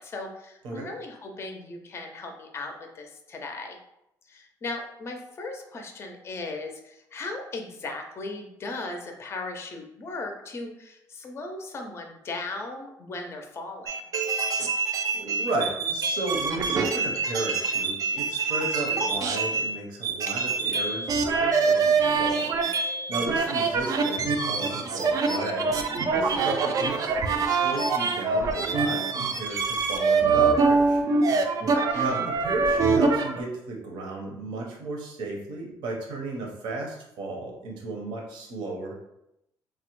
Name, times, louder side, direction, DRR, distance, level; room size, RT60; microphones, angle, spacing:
voice 1, 0.0-3.8 4.3-14.0 23.1-23.4 31.7-32.2, left 3 dB, 35° left, 3 dB, 0.4 m, -37 dB
sound 1, 13.9-19.8 20.0-33.4, right 4 dB, 50° right, 0.4 m, -25 dB
voice 2, 15.1-22.5 23.1-25.8 26.1-31.1 31.9-38.9, right 2 dB, 85° right, 0 dB, 0.7 m, -34 dB
3.3 x 2.1 x 3.0 m, 0.84 s
cardioid pair, 110°, 8 cm